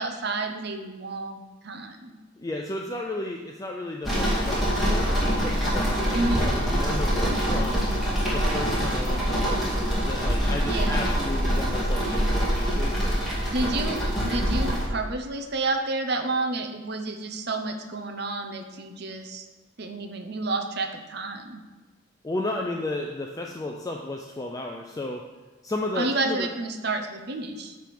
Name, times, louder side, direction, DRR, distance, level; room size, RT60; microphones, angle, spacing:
voice 1, 0.0-2.2 6.1-6.5 10.6-11.0 13.5-19.5 19.8-21.6 25.9-27.7, right 2 dB, 50° right, 5 dB, 0.7 m, -30 dB
voice 2, 2.4-7.9 8.3-12.5 12.8-13.4 22.2-25.2 25.6-26.5, left 2 dB, 15° left, 0 dB, 0.4 m, -33 dB
sound 1, 4.0-14.9, equal, ahead, 2.1 m, -25 dB
9.4 x 3.5 x 5.9 m, 1.3 s
head